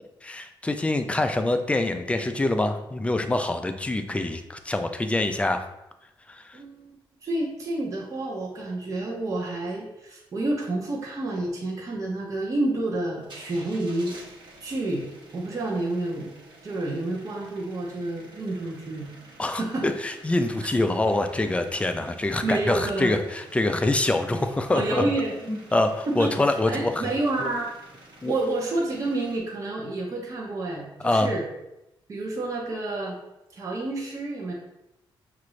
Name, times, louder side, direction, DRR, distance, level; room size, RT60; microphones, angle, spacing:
voice 1, 0.2-5.7 6.3-6.6 19.4-25.0 25.5-27.1 27.4-27.5 28.2-28.3 31.0-31.3, left 2 dB, 15° left, 7 dB, 0.3 m, -25 dB
voice 2, 6.5-7.0 7.2-14.1 14.6-16.3 16.6-19.1 19.4-19.9 20.6-20.7 22.4-23.2 24.7-25.6 26.1-27.7 28.2-31.4 32.1-33.2 33.5-34.5, right 2 dB, 35° right, -2 dB, 0.8 m, -29 dB
sound 1, 13.2-29.4, right 2 dB, 60° right, 1.1 m, -50 dB
5.8 x 2.5 x 3.1 m, 0.91 s
cardioid pair, 130°, 9 cm